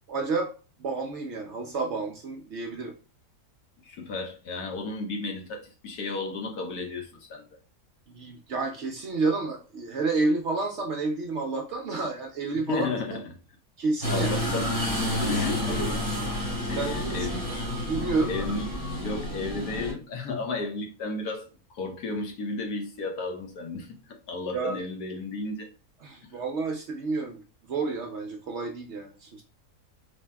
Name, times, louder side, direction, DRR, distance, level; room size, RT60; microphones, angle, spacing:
voice 1, 0.1-0.5 0.8-2.9 8.1-12.9 13.8-14.4 15.2-15.3 15.7-15.9 16.7-17.3 17.8-18.5 24.5-24.8 26.0-29.4, right 3 dB, 60° right, 0.7 m, -30 dB
voice 2, 3.8-7.4 12.7-13.2 14.1-14.7 15.3-16.0 16.7-17.5 18.2-18.7 19.0-25.7 26.2-26.3, left 3 dB, 80° left, 1.3 m, -33 dB
sound 1, 14.0-19.9, left 1 dB, 15° left, 1.9 m, -29 dB
4.3 x 3.2 x 2.2 m
omnidirectional pair, 1.6 m